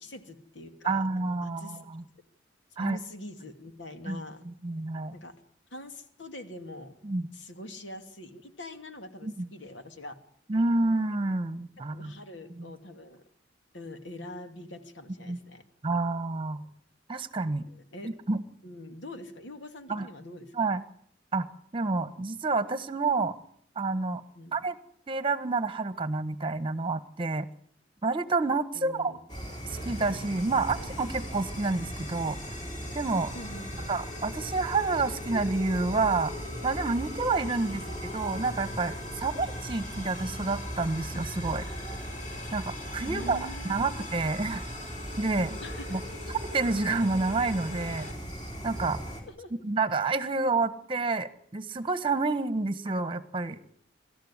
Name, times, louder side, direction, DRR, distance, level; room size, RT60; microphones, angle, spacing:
voice 1, 0.0-1.9 2.8-4.4 5.1-5.3 5.7-7.0 7.3-10.2 11.8-13.2 13.7-15.6 17.7-18.1 18.6-20.7 24.4-24.6 28.7-29.2 33.3-33.9 37.6-37.8 43.0-44.1 45.6-46.0 49.3-49.5, left 1 dB, 70° left, 7 dB, 2.6 m, -44 dB
voice 2, 0.8-2.0 2.8-3.0 4.1-4.2 4.6-5.1 7.0-7.3 9.2-9.5 10.5-12.1 12.6-12.7 15.3-15.4 15.8-16.6 17.1-17.6 18.0-18.4 19.9-20.1 20.5-20.8 21.3-21.5 21.7-23.3 23.7-24.2 24.5-24.8 25.1-27.5 28.0-29.1 29.7-32.4 32.9-33.3 33.9-36.3 36.6-37.8 38.1-41.6 42.5-43.4 43.6-44.6 45.2-45.6 45.9-46.0 46.5-48.1 48.6-49.0 49.6-53.6, right 3 dB, 25° right, 13 dB, 1.4 m, -29 dB
sound 1, 29.3-49.2, equal, 25° left, 5.3 m, -39 dB
sound 2, 29.7-48.1, left 3 dB, 40° left, 4.6 m, -44 dB
25.5 x 14.0 x 9.9 m, 0.66 s
head